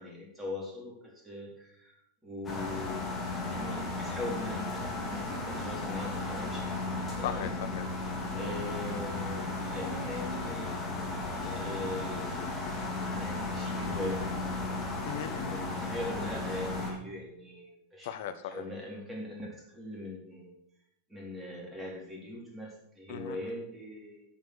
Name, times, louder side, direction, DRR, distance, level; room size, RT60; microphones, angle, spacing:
voice 1, 0.0-1.9 2.2-7.5 8.3-10.7 11.4-12.5 13.1-14.2 15.4-18.1 18.4-20.5 21.1-24.2, left 1 dB, 10° right, -3 dB, 4.0 m, -41 dB
sound 1, 2.4-16.9, left 2 dB, 20° left, 3.2 m, -35 dB
voice 2, 7.2-7.9 15.0-15.6 18.0-18.6 23.1-23.6, left 10 dB, 55° left, 9 dB, 1.0 m, -38 dB
10.5 x 7.4 x 6.5 m, 0.77 s
figure-of-eight pair, 90°, 0 cm